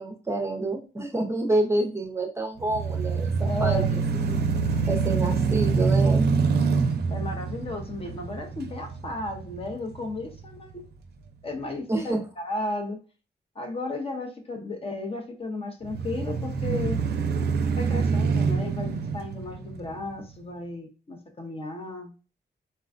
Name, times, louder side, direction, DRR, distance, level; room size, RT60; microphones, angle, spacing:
voice 1, 0.0-4.4 4.9-6.3 11.9-12.2, right 2 dB, 15° right, 2 dB, 0.6 m, -28 dB
sound 1, 2.6-10.7 11.2-11.3 15.8-20.3, right 5 dB, 60° right, 0.5 m, -26 dB
voice 2, 3.5-4.0 7.1-10.8 11.4-13.0 13.6-17.0 17.8-22.1, left 2 dB, 30° left, 4 dB, 0.6 m, -34 dB
4.2 x 2.2 x 2.4 m, 0.34 s
wide cardioid pair, 125°, 19 cm